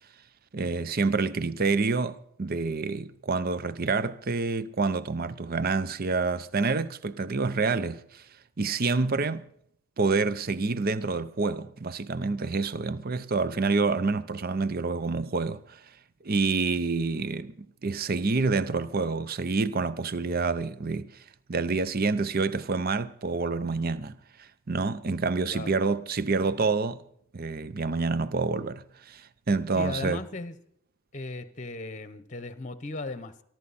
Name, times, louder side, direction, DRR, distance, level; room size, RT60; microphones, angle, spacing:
voice 1, 0.5-8.2 8.6-9.5 10.0-15.8 16.2-21.1 21.5-27.0 27.3-30.2, right 4 dB, 40° right, 0.6 m, -28 dB
voice 2, 29.8-30.6 31.1-33.4, left 2 dB, 35° left, 0.9 m, -36 dB
23.5 x 12.0 x 4.2 m
head